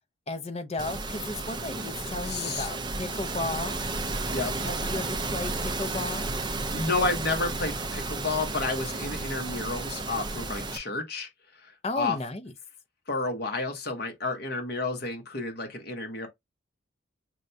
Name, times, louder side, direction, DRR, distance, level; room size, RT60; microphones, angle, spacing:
voice 1, 0.3-3.8 4.6-6.3 11.8-12.5, left 2 dB, 30° left, 0.6 m, -34 dB
sound 1, 0.8-10.8, right 3 dB, 20° right, 0.4 m, -32 dB
voice 2, 2.2-2.7 4.3-4.5 6.7-11.3 12.0-12.2 13.1-16.3, left 3 dB, 50° left, 1.0 m, -30 dB
6.0 x 2.2 x 2.6 m
head